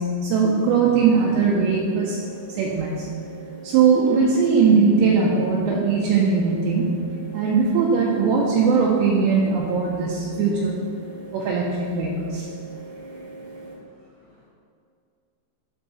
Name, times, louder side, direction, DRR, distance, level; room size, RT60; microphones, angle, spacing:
voice 1, 0.0-3.1 3.6-10.9 11.3-12.5, right 5 dB, 80° right, -3 dB, 2.6 m, -20 dB
sound 1, 0.6-13.7, right 2 dB, 60° right, 2.0 m, -40 dB
voice 2, 13.6-14.5, left 2 dB, 75° left, -6 dB, 2.4 m, -58 dB
12.5 x 4.6 x 3.0 m, 2.4 s
omnidirectional pair, 5.5 m